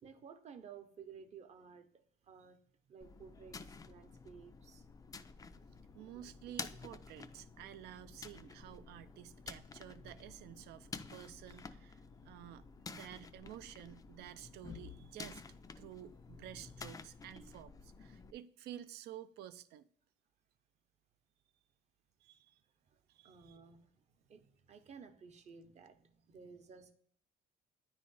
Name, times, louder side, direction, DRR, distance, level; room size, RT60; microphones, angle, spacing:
voice 1, 0.0-1.9 2.2-2.6 2.9-4.8 17.3-17.6 23.2-26.9, right 6 dB, 40° right, 0.7 m, -55 dB
sound 1, 3.0-18.3, left 4 dB, 20° left, 0.3 m, -51 dB
voice 2, 5.9-15.4 15.8-19.9 22.2-22.6 23.1-23.6, right 11 dB, 75° right, 0.4 m, -52 dB
9.3 x 3.2 x 3.9 m
cardioid pair, 110°, 17 cm